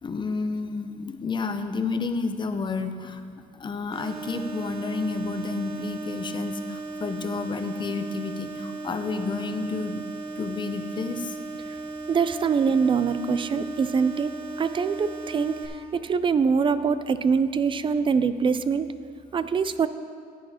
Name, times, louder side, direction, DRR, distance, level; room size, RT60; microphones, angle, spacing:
voice 1, 0.0-3.2 3.6-10.0 10.4-11.4, left 4 dB, 25° left, 8 dB, 0.7 m, -30 dB
sound 1, 3.9-15.7, right 3 dB, 60° right, 1.9 m, -36 dB
voice 2, 12.1-14.3 14.6-15.6 15.9-18.9 19.3-19.9, right 5 dB, 30° right, 13 dB, 0.4 m, -23 dB
14.5 x 8.3 x 2.8 m, 2.2 s
cardioid pair, 110°, 17 cm